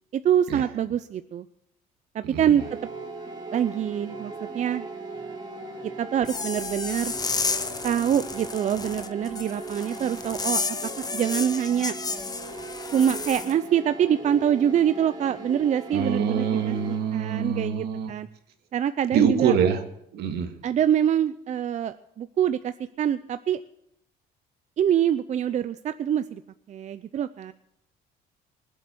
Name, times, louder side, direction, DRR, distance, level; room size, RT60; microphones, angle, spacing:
voice 1, 0.1-1.5 2.1-2.6 3.5-4.9 6.0-7.1 7.8-10.6 11.1-11.9 12.9-18.3 18.7-19.5 20.6-23.6 24.8-26.4 26.7-27.5, right 9 dB, 45° right, 12 dB, 0.6 m, -25 dB
voice 2, 2.2-2.6 15.9-18.1 19.1-19.8 20.1-20.6, right 7 dB, 75° right, 7 dB, 1.9 m, -25 dB
sound 1, 2.6-17.4, right 3 dB, 25° right, 2.8 m, -39 dB
sound 2, 6.2-13.5, left 4 dB, 20° left, 0.9 m, -32 dB
20.0 x 7.9 x 7.7 m, 0.76 s
cardioid pair, 110°, 17 cm